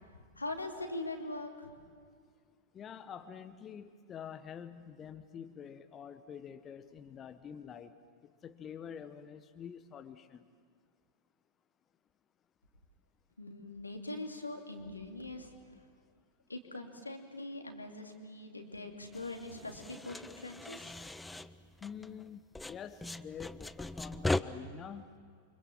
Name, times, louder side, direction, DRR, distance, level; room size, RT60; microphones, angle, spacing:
voice 1, 0.0-1.8 13.4-15.6 16.5-21.0, left 2 dB, 80° left, 3 dB, 2.7 m, -42 dB
voice 2, 2.7-7.9 8.4-10.4 21.8-25.0, left 8 dB, 25° left, 9 dB, 1.0 m, -47 dB
sound 1, 19.1-22.3 22.5-24.4, left 2 dB, 5° left, 0.7 m, -39 dB
29.0 x 25.0 x 7.5 m, 2.1 s
figure-of-eight pair, 90°, 0 cm